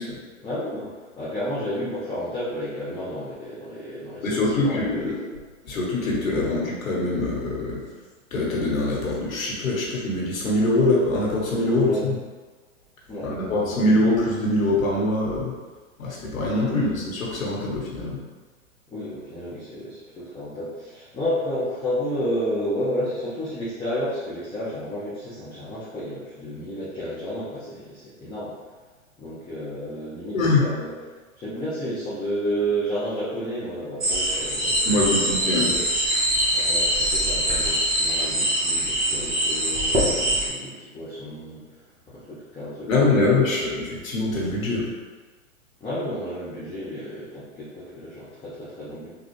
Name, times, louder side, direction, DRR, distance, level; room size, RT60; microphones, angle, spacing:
voice 1, 0.4-5.1 6.4-6.6 11.6-12.0 13.1-13.8 16.7-16.9 18.9-28.5 29.2-30.9 31.4-35.8 36.5-41.8 42.1-43.6 45.8-49.1, equal, 10° left, -11 dB, 0.7 m, -31 dB
voice 2, 4.2-5.2 5.6-7.8 8.3-12.2 13.2-15.5 16.0-18.2 30.3-30.6 34.8-35.7 42.9-44.9, left 2 dB, 85° left, -4 dB, 1.4 m, -23 dB
sound 1, 34.0-40.5, right 1 dB, 20° right, 1.1 m, -23 dB
3.9 x 2.4 x 3.1 m, 1.4 s
hypercardioid pair, 125°, 40 cm